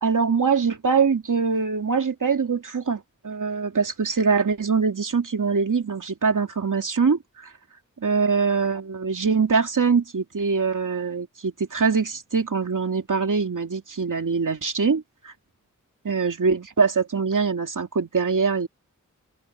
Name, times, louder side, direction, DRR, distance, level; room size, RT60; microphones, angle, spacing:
voice 1, 0.0-7.5 8.0-15.3 16.0-18.7, right 5 dB, 80° right, 2.6 m, -23 dB
open air
wide cardioid pair, 65°, 31 cm